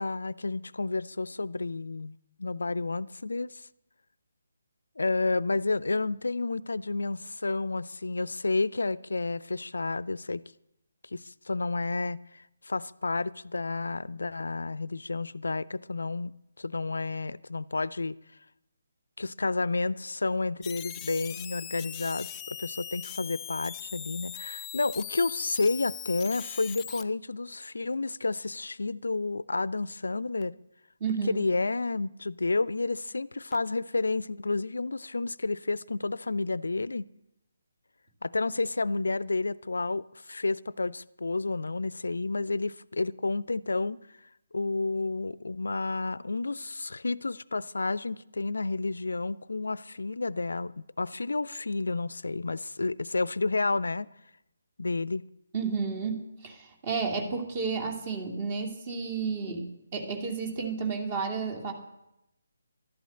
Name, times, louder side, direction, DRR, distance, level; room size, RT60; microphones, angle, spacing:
voice 1, 0.0-2.1 2.4-3.6 5.0-10.4 11.1-18.1 19.2-30.6 31.3-37.1 38.2-44.0 44.5-54.1 54.8-55.2, left 3 dB, 65° left, 0.5 m, -30 dB
sound 1, 20.6-27.0 30.4-30.5 33.5-33.6, left 10 dB, 15° left, 0.5 m, -40 dB
voice 2, 31.0-31.4 55.5-59.6 59.9-61.7, right 5 dB, 30° right, 2.5 m, -31 dB
12.0 x 11.5 x 8.6 m
figure-of-eight pair, 145°, 0 cm